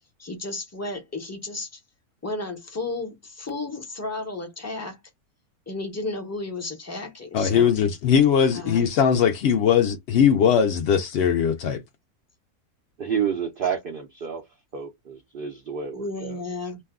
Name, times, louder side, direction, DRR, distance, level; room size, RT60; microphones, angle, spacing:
voice 1, 0.2-1.8 2.2-5.0 5.7-7.7 8.5-8.9 15.9-16.8, left 2 dB, 20° left, 0.4 m, -33 dB
voice 2, 7.3-11.8, left 8 dB, 70° left, 0.6 m, -20 dB
voice 3, 13.0-14.5 14.7-16.4, right 7 dB, 65° right, 0.5 m, -29 dB
2.6 x 2.2 x 3.5 m
omnidirectional pair, 1.6 m